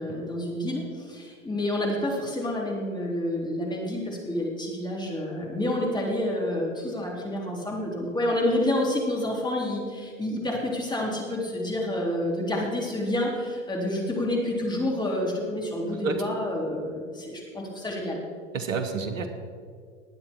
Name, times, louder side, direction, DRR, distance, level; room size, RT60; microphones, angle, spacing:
voice 1, 0.0-18.2, left 1 dB, 10° left, -2 dB, 3.6 m, -29 dB
voice 2, 18.5-19.3, right 4 dB, 85° right, 8 dB, 1.4 m, -29 dB
20.0 x 8.8 x 4.6 m, 2.1 s
hypercardioid pair, 85°, 38 cm